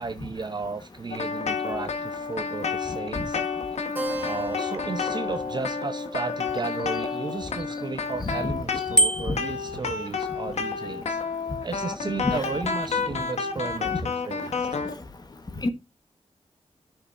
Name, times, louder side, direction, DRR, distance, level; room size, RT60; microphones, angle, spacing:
voice 1, 0.0-3.4 4.2-11.2 11.6-14.8, right 4 dB, 40° right, 0.8 m, -34 dB
sound 1, 1.1-15.0, left 5 dB, 90° left, 1.3 m, -30 dB
Keyboard (musical), 3.9-8.9, right 1 dB, 15° right, 2.4 m, -39 dB
voice 2, 8.2-8.5 9.3-9.4 12.2-12.5 13.9-14.0 15.6-15.7, left 2 dB, 40° left, 1.4 m, -28 dB
Bicycle bell, 8.9-9.6, equal, 5° left, 0.6 m, -22 dB
10.5 x 6.4 x 2.6 m
wide cardioid pair, 115°, 11 cm